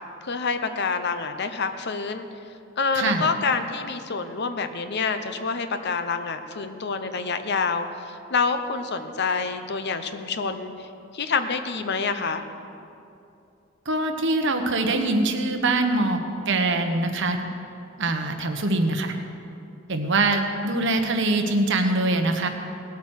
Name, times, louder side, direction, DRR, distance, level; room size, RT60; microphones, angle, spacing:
voice 1, 0.2-2.3 2.8-7.9 8.3-10.9 11.1-12.4, left 4 dB, 55° left, 9 dB, 0.8 m, -27 dB
voice 2, 13.8-16.2 16.5-17.4 18.0-19.1 19.9-22.5, right 2 dB, 65° right, 5 dB, 1.3 m, -23 dB
18.5 x 8.3 x 6.5 m, 2.6 s
head